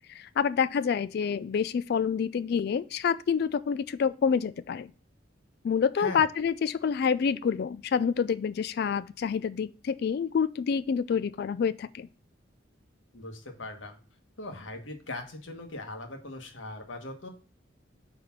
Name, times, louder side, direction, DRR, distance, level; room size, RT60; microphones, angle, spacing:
voice 1, 0.1-4.9 5.6-12.1, left 6 dB, 55° left, 0.3 m, -27 dB
voice 2, 13.1-14.0 14.4-17.3, left 2 dB, 75° left, 1.4 m, -40 dB
5.0 x 4.1 x 5.8 m
head